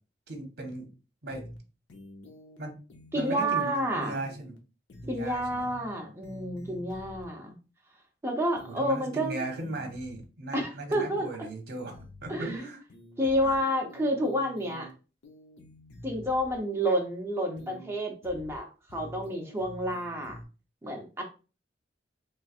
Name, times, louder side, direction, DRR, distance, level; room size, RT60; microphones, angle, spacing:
voice 1, 0.3-0.9 1.2-1.5 2.6-2.8 3.1-4.5 5.0-5.7 8.8-12.8 13.4-13.5, right 2 dB, 60° right, 2 dB, 0.9 m, -38 dB
sound 1, 1.3-1.6 1.9-2.6 2.9-3.9 4.2-4.6 4.9-5.9 6.2-7.2 8.6-10.2 10.9-11.2 11.9-12.6 12.9-14.9 15.2-16.6 17.6-17.9 18.2-18.6 18.9-20.5, equal, 85° left, 0.7 m, -48 dB
voice 2, 3.1-4.2 5.1-7.5 8.2-9.4 10.5-11.3 12.3-12.6 13.2-14.9 16.0-18.7 18.9-20.4 20.8-21.2, equal, 15° right, 0 dB, 0.7 m, -29 dB
3.2 x 3.1 x 2.4 m, 0.33 s
head